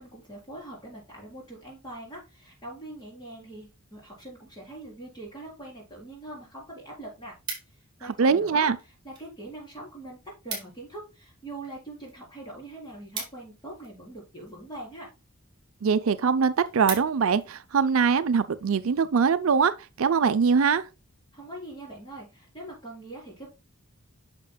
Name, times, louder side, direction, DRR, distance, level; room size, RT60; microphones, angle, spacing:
voice 1, 0.0-7.4 8.0-15.1 21.3-23.5, right 1 dB, 20° left, 3.9 m, -43 dB
sound 1, 7.0-8.1 8.8-9.3 9.6-9.7 10.0-10.1 10.3-10.9 11.3-14.1 14.8-15.2 15.7-15.8 16.1-16.2 16.5-17.5 18.0-18.2, right 5 dB, 20° right, 3.8 m, -39 dB
voice 2, 8.2-8.8 15.8-20.8, right 5 dB, 70° right, 0.5 m, -22 dB
8.9 x 6.6 x 2.2 m
head